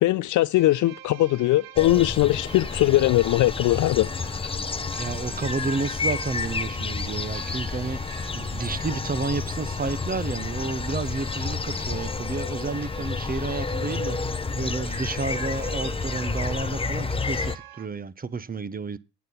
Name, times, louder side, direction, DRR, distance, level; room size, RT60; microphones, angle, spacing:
voice 1, 0.0-4.1 4.4-4.5, left 16 dB, 45° left, 0.5 m, -21 dB
sound 1, 0.5-17.9, right 13 dB, 80° right, 1.1 m, -47 dB
sound 2, 1.8-17.6, left 4 dB, 15° left, 0.7 m, -30 dB
voice 2, 5.0-19.0, right 4 dB, 20° right, 0.9 m, -31 dB
9.1 x 8.3 x 5.7 m
hypercardioid pair, 75°, 42 cm